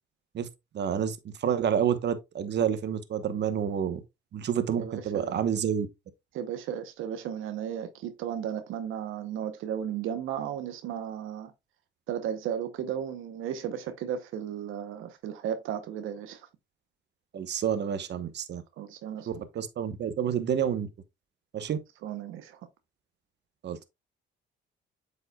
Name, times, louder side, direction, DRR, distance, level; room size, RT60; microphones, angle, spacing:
voice 1, 0.7-4.0 4.3-5.9 17.3-18.6 19.3-20.9 21.5-21.8 23.6-23.8, right 8 dB, 60° right, 1.0 m, -29 dB
voice 2, 4.8-5.3 6.3-11.5 12.1-16.5 18.8-19.4 22.0-22.6, right 9 dB, 90° right, 0.8 m, -35 dB
7.9 x 5.4 x 2.2 m
cardioid pair, 90°, 20 cm